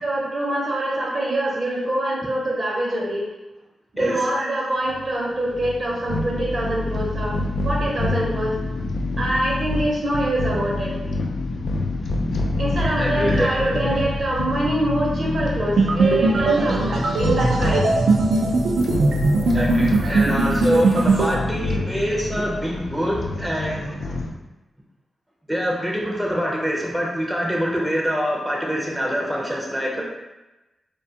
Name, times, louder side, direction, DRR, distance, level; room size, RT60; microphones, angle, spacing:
voice 1, 0.0-3.2 3.9-7.4 7.6-8.5 9.2-11.0 12.6-17.9 29.9-30.0, right 1 dB, 55° right, -4 dB, 0.7 m, -24 dB
voice 2, 4.0-4.3 12.3-12.4 13.0-13.5 18.8-19.1 19.5-24.1 25.5-30.0, equal, 5° right, -3 dB, 0.5 m, -25 dB
sound 1, 4.9-24.3, left 2 dB, 70° left, 0.3 m, -27 dB
sound 2, 15.8-21.3, right 3 dB, 90° right, 0.3 m, -20 dB
2.4 x 2.2 x 2.7 m, 1.1 s
cardioid pair, 70°, 0 cm